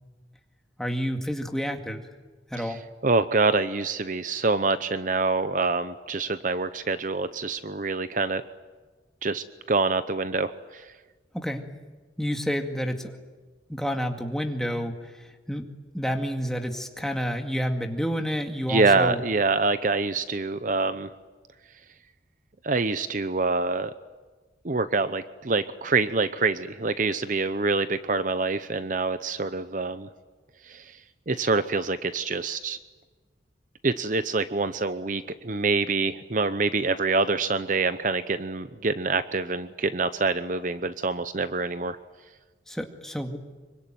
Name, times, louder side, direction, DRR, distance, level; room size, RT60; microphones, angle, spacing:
voice 1, 0.8-2.0 2.5-2.8 11.3-11.7 12.2-13.2 13.7-19.2 42.7-43.4, equal, 5° left, 4 dB, 2.1 m, -29 dB
voice 2, 3.0-8.4 9.2-10.9 18.7-21.1 22.6-23.9 24.6-30.1 30.6-31.0 31.3-32.8 33.8-42.0, right 3 dB, 45° right, 12 dB, 0.8 m, -26 dB
25.5 x 24.0 x 9.3 m, 1.3 s
head